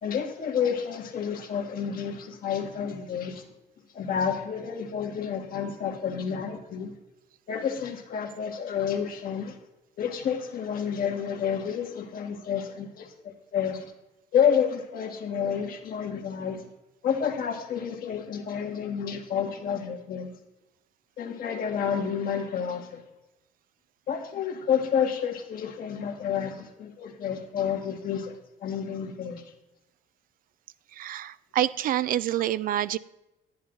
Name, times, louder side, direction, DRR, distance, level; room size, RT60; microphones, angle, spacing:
voice 1, 0.0-3.4 3.9-6.9 7.5-9.6 10.0-13.9 14.3-16.6 17.0-20.3 21.2-23.0 24.1-29.4, left 7 dB, 60° left, 3 dB, 1.8 m, -29 dB
voice 2, 30.9-33.0, right 12 dB, 55° right, 17 dB, 0.4 m, -27 dB
11.0 x 10.5 x 3.9 m, 0.95 s
cardioid pair, 110°, 17 cm